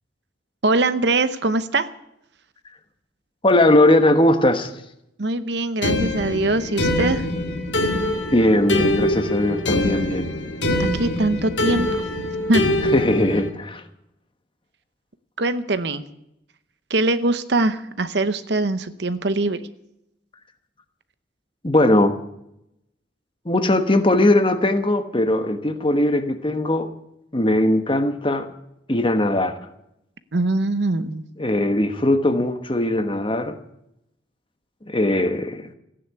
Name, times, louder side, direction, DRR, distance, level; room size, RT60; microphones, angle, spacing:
voice 1, 0.6-1.9 5.2-7.3 10.7-11.9 12.5-12.6 15.4-16.0 16.9-19.6 30.3-31.2, right 2 dB, 60° right, 13 dB, 0.8 m, -22 dB
voice 2, 3.4-4.7 8.3-10.3 12.9-13.8 21.6-22.2 23.4-26.9 27.3-28.5 28.9-29.6 31.4-33.6 34.9-35.7, left 1 dB, 25° left, 8 dB, 1.1 m, -19 dB
sound 1, 5.8-13.5, left 1 dB, 75° left, 1.7 m, -24 dB
15.0 x 10.0 x 8.3 m, 0.81 s
head